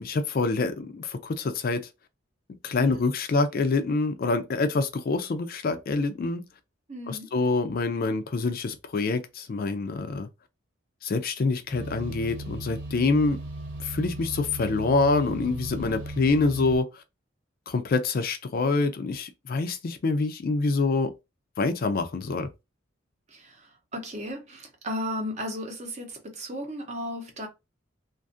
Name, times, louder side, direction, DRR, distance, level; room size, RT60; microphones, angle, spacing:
voice 1, 0.0-1.8 2.6-6.4 7.1-10.3 11.0-13.4 13.8-16.9 17.7-21.1 21.6-22.5, left 3 dB, 50° left, 0.4 m, -26 dB
voice 2, 2.8-3.1 6.9-7.3 23.3-27.5, equal, 35° right, 0.7 m, -35 dB
sound 1, 11.7-16.8, right 1 dB, 70° right, 1.0 m, -37 dB
2.5 x 2.4 x 2.5 m
head